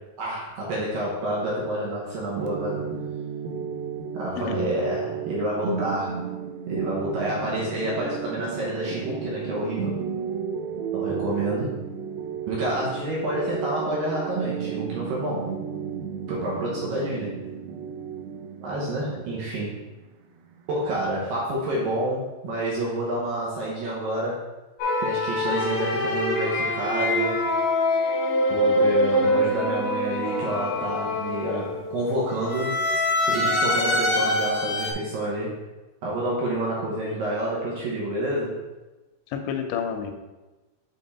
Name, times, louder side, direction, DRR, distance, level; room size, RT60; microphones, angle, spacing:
voice 1, 0.2-2.8 4.1-6.2 6.7-10.0 10.9-11.7 12.5-15.5 16.3-17.4 18.6-19.8 20.7-24.4 25.0-27.4 28.5-32.8 33.3-35.5 36.0-38.5, right 1 dB, 70° right, -5 dB, 2.4 m, -28 dB
sound 1, 2.4-21.9, right 7 dB, 85° right, 2.1 m, -33 dB
voice 2, 4.4-4.7 39.3-40.1, left 7 dB, 90° left, 5 dB, 3.0 m, -29 dB
sound 2, 24.8-31.9 32.5-34.9, left 1 dB, 55° left, 3.2 m, -24 dB
7.6 x 3.7 x 4.1 m, 1.1 s
omnidirectional pair, 5.0 m